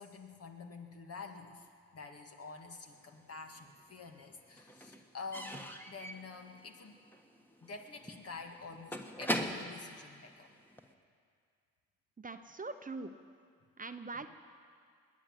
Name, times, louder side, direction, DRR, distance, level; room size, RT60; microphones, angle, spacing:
voice 1, 0.0-1.7 1.9-7.0 7.6-10.5 14.1-14.3, left 4 dB, 50° left, 4 dB, 1.9 m, -48 dB
Slam / Squeak / Wood, 3.1-3.9 4.2-10.9, equal, 5° left, 1.5 m, -41 dB
voice 2, 12.2-13.1 13.8-14.3, right 3 dB, 25° right, 8 dB, 0.9 m, -42 dB
20.5 x 8.9 x 7.8 m, 2.1 s
supercardioid pair, 55°, 32 cm